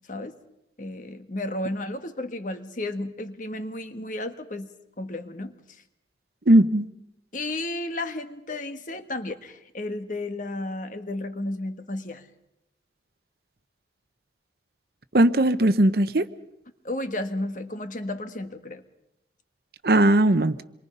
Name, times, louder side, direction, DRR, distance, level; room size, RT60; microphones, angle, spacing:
voice 1, 0.8-4.7 5.0-5.6 7.3-12.3 16.8-18.8, left 1 dB, 45° left, 8 dB, 1.5 m, -33 dB
voice 2, 6.5-6.8 15.1-16.3 19.8-20.6, right 1 dB, 55° right, 13 dB, 0.9 m, -18 dB
27.5 x 23.0 x 5.6 m, 0.84 s
head